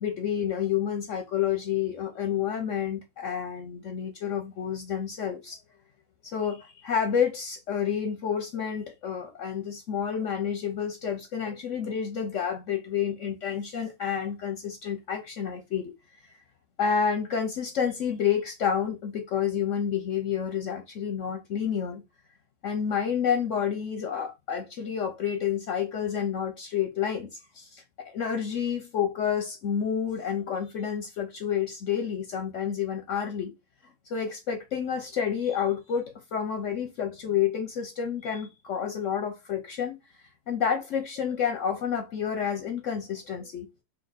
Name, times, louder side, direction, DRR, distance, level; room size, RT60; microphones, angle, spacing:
voice 1, 0.0-5.6 6.2-15.9 16.8-22.0 22.6-33.5 34.1-40.0 40.5-43.7, left 8 dB, 60° left, 0.8 m, -29 dB
3.5 x 2.7 x 3.9 m
omnidirectional pair, 2.0 m